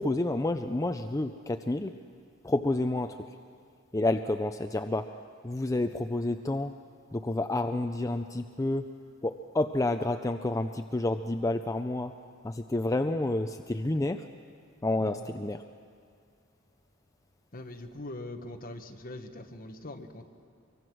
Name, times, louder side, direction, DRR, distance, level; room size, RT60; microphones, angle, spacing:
voice 1, 0.0-1.9 2.4-3.2 3.9-5.1 5.4-6.7 7.1-8.9 9.2-12.1 12.4-14.2 14.8-15.6, left 2 dB, 15° left, 7 dB, 0.5 m, -29 dB
voice 2, 17.5-20.2, left 1 dB, 45° left, 5 dB, 1.4 m, -42 dB
24.5 x 23.5 x 6.2 m, 2.3 s
head